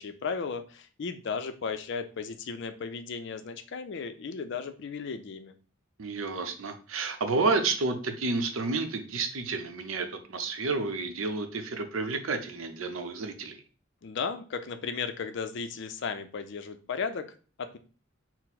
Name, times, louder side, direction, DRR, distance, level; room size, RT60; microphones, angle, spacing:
voice 1, 0.0-5.6 14.0-17.3 17.6-17.8, left 5 dB, 65° left, 9 dB, 0.4 m, -35 dB
voice 2, 6.0-13.6, right 3 dB, 90° right, 7 dB, 0.6 m, -30 dB
4.4 x 2.0 x 4.0 m, 0.38 s
head